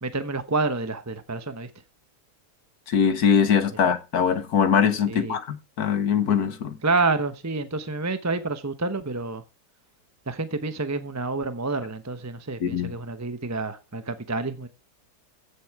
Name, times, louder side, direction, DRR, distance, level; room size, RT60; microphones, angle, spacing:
voice 1, 0.0-1.7 3.7-3.8 5.1-5.4 6.8-9.4 10.3-14.7, right 3 dB, 15° right, 0.6 m, -28 dB
voice 2, 2.9-6.8 12.6-12.9, left 7 dB, 70° left, 1.8 m, -22 dB
15.5 x 7.5 x 4.7 m
omnidirectional pair, 1.7 m